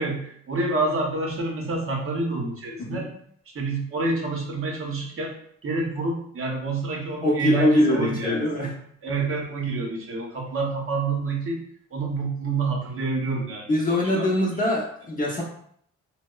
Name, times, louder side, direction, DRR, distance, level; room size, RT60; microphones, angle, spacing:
voice 1, 0.0-3.1 3.5-5.3 5.6-8.7 9.0-11.6 11.9-14.5, right 3 dB, 45° right, -1 dB, 0.7 m, -28 dB
voice 2, 7.2-8.7 13.7-15.4, left 1 dB, 30° left, -4 dB, 0.6 m, -23 dB
2.8 x 2.0 x 2.2 m, 0.65 s
cardioid pair, 90°, 30 cm